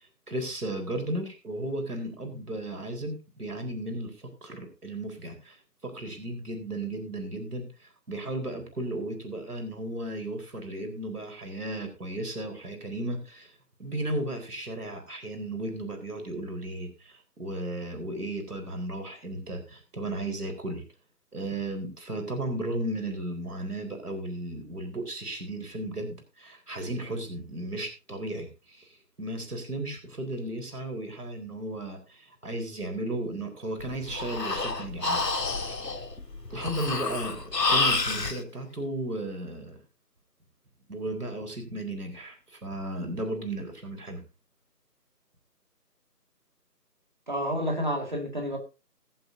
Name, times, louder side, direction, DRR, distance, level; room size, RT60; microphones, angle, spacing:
voice 1, 0.3-13.5 13.8-20.8 21.3-36.0 36.5-39.8 40.9-44.2, right 1 dB, 65° right, 4.3 m, -35 dB
Breathing, 33.8-38.4, left 3 dB, 80° left, 2.0 m, -29 dB
voice 2, 47.3-48.6, equal, 30° right, 2.0 m, -29 dB
23.0 x 7.8 x 2.7 m
figure-of-eight pair, 175°, 48 cm